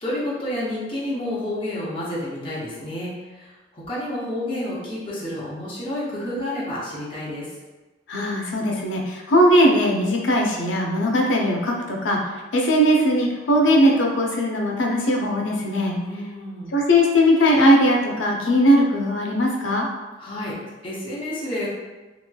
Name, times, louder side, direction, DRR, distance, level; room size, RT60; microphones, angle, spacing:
voice 1, 0.0-7.5 15.9-16.7 20.2-20.6 20.8-21.7, left 1 dB, 30° left, -8 dB, 0.7 m, -30 dB
voice 2, 8.1-12.2 12.5-16.0 16.7-19.9, equal, 90° left, 0 dB, 0.5 m, -19 dB
3.0 x 2.8 x 2.2 m, 1.2 s
head